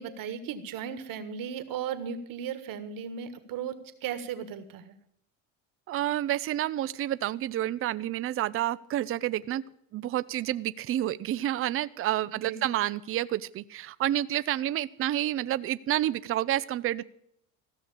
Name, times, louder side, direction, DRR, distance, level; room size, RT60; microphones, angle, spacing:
voice 1, 0.0-4.9 12.4-12.7, right 8 dB, 55° right, 10 dB, 1.6 m, -36 dB
voice 2, 5.9-9.6 9.9-17.0, right 13 dB, 35° right, 16 dB, 0.5 m, -29 dB
15.5 x 6.4 x 9.9 m, 0.72 s
supercardioid pair, 100°, 39 cm